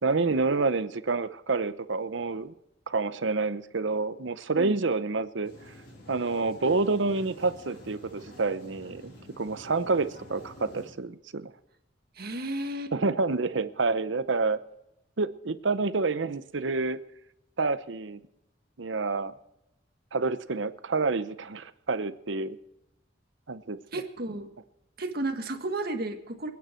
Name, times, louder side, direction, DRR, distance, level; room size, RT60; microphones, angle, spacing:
voice 1, 0.0-2.5 2.9-5.5 6.1-11.5 12.9-14.6 15.2-17.0 17.6-18.2 18.8-19.3 20.1-22.6 23.5-23.8, right 3 dB, 75° right, 13 dB, 0.8 m, -28 dB
sound 1, 5.4-10.9, left 1 dB, 65° left, 5.1 m, -49 dB
voice 2, 12.1-12.9 23.9-24.5 25.0-26.5, right 2 dB, 55° right, 5 dB, 1.7 m, -33 dB
28.0 x 9.5 x 4.5 m, 0.87 s
head